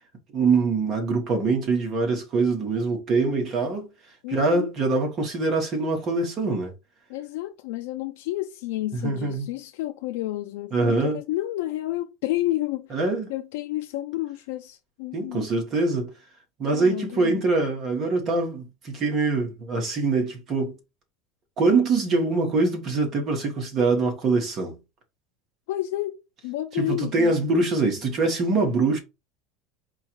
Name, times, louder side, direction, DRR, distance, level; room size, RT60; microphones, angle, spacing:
voice 1, 0.3-3.9 4.3-6.7 9.0-9.5 10.7-11.2 12.9-13.3 15.1-16.1 16.6-20.8 21.6-24.8 26.8-29.0, right 3 dB, 35° right, 1.3 m, -24 dB
voice 2, 4.2-4.7 7.1-13.0 13.3-15.5 16.7-17.5 25.7-27.3, left 16 dB, 80° left, 0.4 m, -30 dB
4.5 x 2.4 x 4.5 m
supercardioid pair, 150°, 0 cm